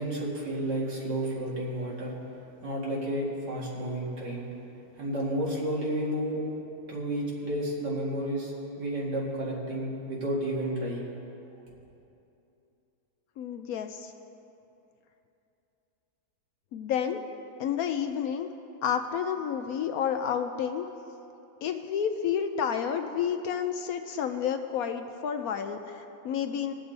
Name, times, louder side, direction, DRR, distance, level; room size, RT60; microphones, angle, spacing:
voice 1, 0.0-2.1 2.6-4.5 5.0-6.4 6.9-8.5 8.8-11.1, right 1 dB, 80° right, -5 dB, 2.7 m, -31 dB
voice 2, 13.4-14.1 16.7-17.2 17.6-18.5 18.8-20.9 21.6-26.7, left 8 dB, 70° left, 7 dB, 0.9 m, -30 dB
20.5 x 7.0 x 4.0 m, 2.8 s
omnidirectional pair, 1.8 m